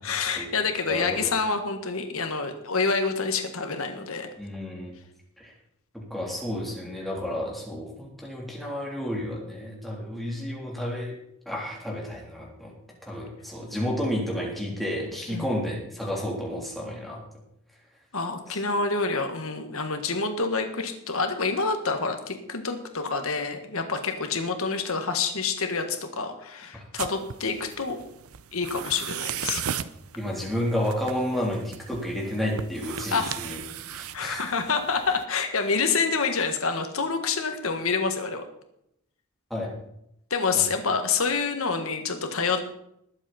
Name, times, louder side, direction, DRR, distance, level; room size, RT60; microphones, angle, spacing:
voice 1, 0.0-4.3 15.3-15.5 18.1-28.0 28.5-29.6 33.1-33.4 34.1-38.4 40.3-42.8, left 4 dB, 70° left, 6 dB, 1.6 m, -27 dB
voice 2, 0.9-1.3 4.4-4.9 5.4-5.5 5.9-11.1 11.5-12.7 13.0-17.2 18.5-18.6 26.9-27.0 30.2-33.6 33.9-34.5 39.5-39.7 40.5-40.6, left 1 dB, ahead, -3 dB, 3.4 m, -31 dB
sound 1, 27.0-35.2, right 9 dB, 80° right, 0.6 m, -37 dB
20.5 x 7.9 x 4.3 m, 0.77 s
head